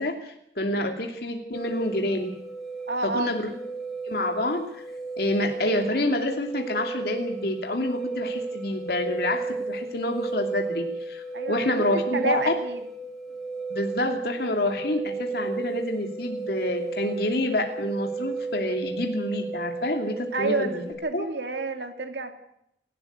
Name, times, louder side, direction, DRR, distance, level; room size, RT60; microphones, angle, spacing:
voice 1, 0.0-2.3 3.0-3.5 4.0-4.8 5.2-12.5 13.7-20.8 21.1-21.3, left 1 dB, 60° left, 3 dB, 2.7 m, -28 dB
sound 1, 1.5-20.9, right 4 dB, ahead, 4.9 m, -34 dB
voice 2, 2.9-3.3 11.3-12.8 20.3-22.3, right 3 dB, 80° right, 6 dB, 2.5 m, -30 dB
29.0 x 12.5 x 8.1 m, 0.77 s
head